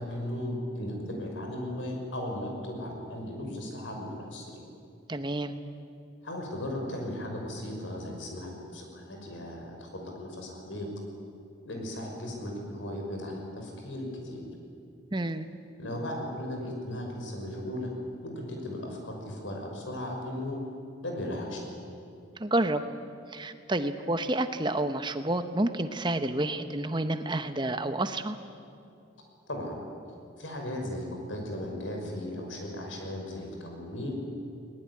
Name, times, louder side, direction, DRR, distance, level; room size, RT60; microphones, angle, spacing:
voice 1, 0.0-4.6 6.2-10.9 11.7-14.4 15.8-17.9 18.2-20.6 21.0-21.8 29.5-29.8 30.4-34.2, left 1 dB, 90° left, 2 dB, 5.8 m, -36 dB
voice 2, 5.1-5.5 15.1-15.5 22.4-22.9 23.3-28.4, right 1 dB, 25° right, 9 dB, 0.9 m, -29 dB
21.0 x 19.5 x 9.7 m, 2.5 s
head